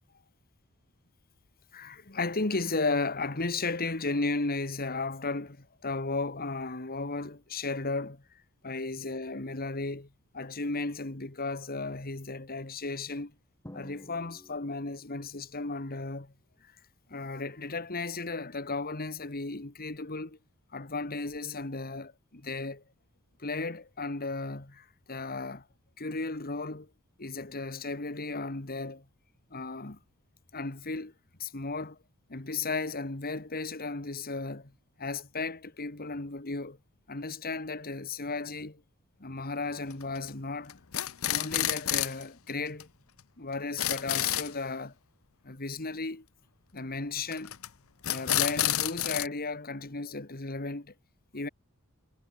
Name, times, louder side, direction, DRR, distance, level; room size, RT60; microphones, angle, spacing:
voice 1, 1.7-13.3 13.7-16.3 16.6-16.7 17.1-20.4 20.7-22.8 23.4-25.7 26.0-26.9 27.2-29.1 29.5-30.0 30.5-31.1 31.4-32.0 32.3-34.7 35.0-36.8 37.1-38.8 39.2-40.8 41.3-42.9 43.4-44.9 45.4-46.3 46.7-47.5 48.1-50.9 51.3-51.5, left 3 dB, 45° left, 2.0 m, -35 dB
Drum, 13.6-15.4, equal, 15° left, 2.2 m, -51 dB
sound 1, 39.9-40.3 40.7-42.2 42.5-42.6 42.8-42.9 43.2-43.3 43.5-44.5 47.3-47.7 48.0-49.3, left 12 dB, 65° left, 1.0 m, -29 dB
head